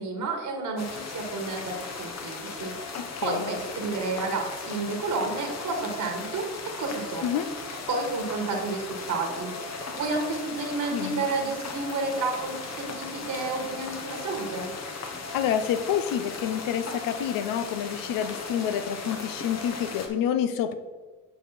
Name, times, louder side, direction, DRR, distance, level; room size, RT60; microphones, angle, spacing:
voice 1, 0.0-7.3 7.9-9.5 10.0-14.7, right 3 dB, 60° right, 2 dB, 1.8 m, -31 dB
sound 1, 0.8-20.1, left 4 dB, 50° left, 1.2 m, -37 dB
voice 2, 3.0-3.5 7.2-7.5 10.9-11.2 15.3-20.7, left 9 dB, 75° left, 10 dB, 0.7 m, -28 dB
7.7 x 4.8 x 4.2 m, 1.3 s
hypercardioid pair, 50°, 34 cm